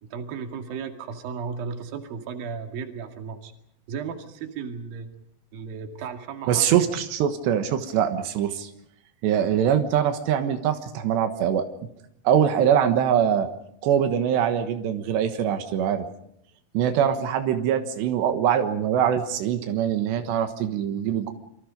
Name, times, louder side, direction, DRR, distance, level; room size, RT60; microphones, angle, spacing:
voice 1, 0.1-3.5 3.9-5.1 5.5-6.7, right 6 dB, 60° right, 5 dB, 3.9 m, -35 dB
voice 2, 6.5-8.7 9.2-11.7 12.3-13.5 13.8-16.1 16.7-21.3, right 9 dB, 85° right, 7 dB, 3.7 m, -23 dB
27.5 x 25.0 x 5.3 m, 0.75 s
omnidirectional pair, 4.8 m